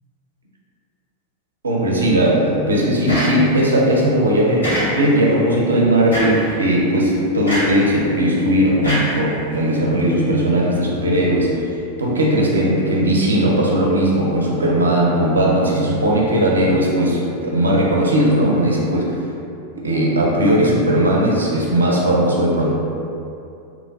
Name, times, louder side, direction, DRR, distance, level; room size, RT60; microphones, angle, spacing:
voice 1, 1.6-11.6 12.0-19.2 19.7-22.7, right 1 dB, 75° right, -3 dB, 0.5 m, -17 dB
sound 1, 3.1-3.7 4.6-5.3 6.1-6.5 7.5-7.9 8.8-9.7, equal, 85° left, 1.5 m, -23 dB
3.0 x 2.5 x 2.2 m, 2.6 s
figure-of-eight pair, 90°, 0 cm